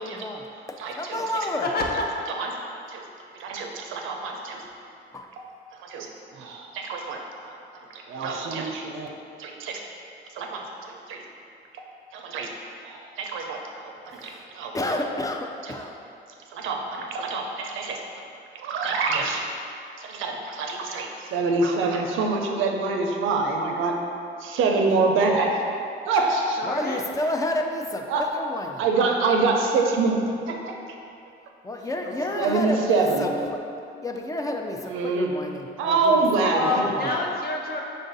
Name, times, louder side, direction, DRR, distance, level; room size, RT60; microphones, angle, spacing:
voice 1, 0.0-1.7 5.1-5.3 14.2-14.4 14.7-15.9 26.6-28.9 31.6-33.6 34.0-36.2 36.5-37.1, left 1 dB, 15° left, 2 dB, 0.4 m, -30 dB
voice 2, 0.8-1.5 2.4-2.5 2.9-3.0 3.4-4.6 5.4-5.5 5.8-7.6 7.9-9.1 9.4-9.8 10.3-11.2 12.1-12.5 12.8-14.7 15.7-15.8 16.5-18.0 18.5-19.4 20.0-24.0 24.5-25.6 26.1-26.6 28.1-28.3 28.8-30.2 30.5-30.8 32.4-33.3 34.9-35.3 35.8-36.7 37.0-37.1, right 3 dB, 85° right, 2 dB, 0.5 m, -26 dB
voice 3, 1.6-2.0 26.6-27.0 32.0-32.5 36.5-37.8, left 3 dB, 50° left, 0 dB, 0.7 m, -28 dB
5.2 x 2.5 x 3.9 m, 2.6 s
cardioid pair, 90°, 20 cm